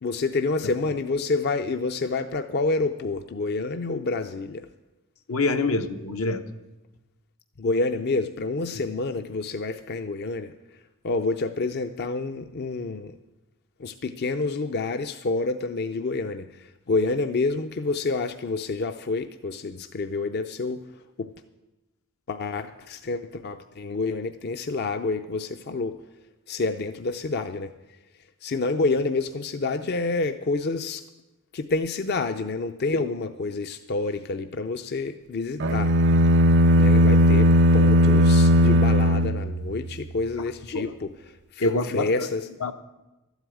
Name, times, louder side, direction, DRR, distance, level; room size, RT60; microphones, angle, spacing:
voice 1, 0.0-4.7 7.6-10.5 11.0-13.2 13.8-20.8 21.2-21.3 22.3-26.0 26.5-27.7 28.4-31.0 31.5-35.9 36.8-41.1 41.5-42.5, left 3 dB, 50° left, 8 dB, 0.5 m, -28 dB
voice 2, 5.3-6.4 8.7-8.8 32.9-33.0 40.7-40.9 41.6-42.3 42.6-42.7, left 3 dB, 75° left, 7 dB, 0.9 m, -25 dB
sound 1, 35.6-40.0, equal, 55° right, 0.6 m, -18 dB
13.0 x 8.2 x 9.0 m, 1.0 s
head